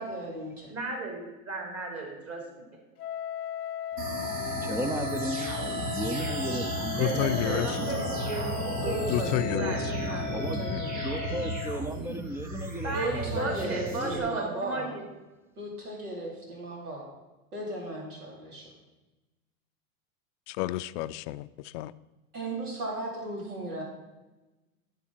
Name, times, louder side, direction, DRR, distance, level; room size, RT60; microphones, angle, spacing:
voice 1, 0.0-0.7 8.8-11.0 12.9-14.9 15.6-17.1 17.5-18.7 22.3-23.8, right 1 dB, 85° right, -3 dB, 4.0 m, -36 dB
voice 2, 0.7-2.4 7.0-9.0 9.6-10.3 12.8-15.0, right 3 dB, 35° right, 1 dB, 3.4 m, -34 dB
Wind instrument woodwind instrument, 3.0-11.9, left 10 dB, 85° left, 0.8 m, -37 dB
sound 1, 4.0-14.2, right 2 dB, 60° right, 2.7 m, -34 dB
voice 3, 4.6-5.5 5.9-7.2 10.3-10.7 11.0-13.4 13.9-14.5, right 1 dB, 5° right, 10 dB, 0.4 m, -35 dB
voice 4, 7.0-7.8 9.1-9.8 10.7-11.1 20.5-21.9, left 16 dB, 55° left, 13 dB, 0.5 m, -31 dB
11.0 x 7.6 x 4.4 m, 1.1 s
hypercardioid pair, 105°, 44 cm